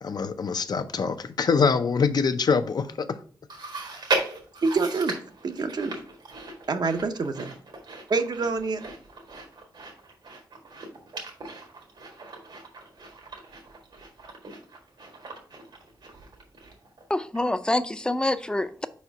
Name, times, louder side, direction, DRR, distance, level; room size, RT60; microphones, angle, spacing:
voice 1, 0.0-3.2, left 5 dB, 60° left, 0.5 m, -24 dB
Chewing mastication, 3.5-17.0 17.3-17.4 18.3-18.4, right 3 dB, 85° right, 1.6 m, -37 dB
voice 2, 4.6-5.2 5.4-5.9 6.7-7.5 8.1-8.9, right 4 dB, 65° right, 0.7 m, -26 dB
voice 3, 17.1-18.9, left 1 dB, 10° left, 0.4 m, -26 dB
5.0 x 4.3 x 4.6 m
wide cardioid pair, 95°, 8 cm